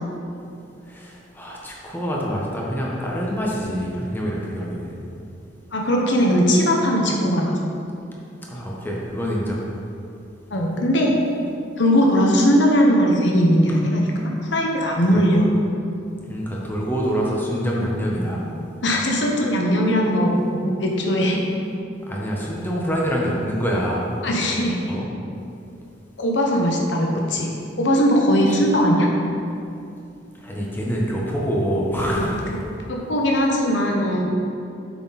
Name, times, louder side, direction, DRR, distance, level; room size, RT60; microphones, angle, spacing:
voice 1, 0.9-4.9 8.5-9.6 15.0-15.2 16.3-18.4 22.1-24.0 24.8-25.1 28.5-28.6 30.4-32.4, equal, 10° left, -3 dB, 1.1 m, -26 dB
voice 2, 5.7-7.5 10.5-11.1 11.8-15.5 18.8-20.3 20.6-21.4 24.2-24.8 26.2-27.5 27.8-29.1 32.0-32.2 32.9-34.2, equal, 70° left, -1 dB, 1.1 m, -19 dB
7.8 x 6.1 x 4.1 m, 2.6 s
head